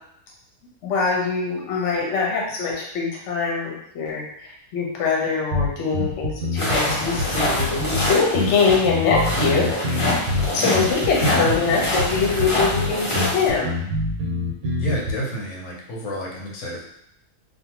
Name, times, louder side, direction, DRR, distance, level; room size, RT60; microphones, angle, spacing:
voice 1, 0.8-4.3 4.7-9.7 10.1-10.2 10.5-13.8, left 5 dB, 60° left, -2 dB, 0.9 m, -23 dB
sound 1, 5.5-15.1, left 2 dB, 85° right, 1.2 m, -26 dB
sound 2, 6.6-13.5, left 1 dB, 35° left, 0.5 m, -25 dB
voice 2, 9.4-9.7 11.2-11.6 14.8-16.8, right 1 dB, 90° left, -2 dB, 1.2 m, -28 dB
2.6 x 2.4 x 2.8 m, 0.76 s
omnidirectional pair, 1.5 m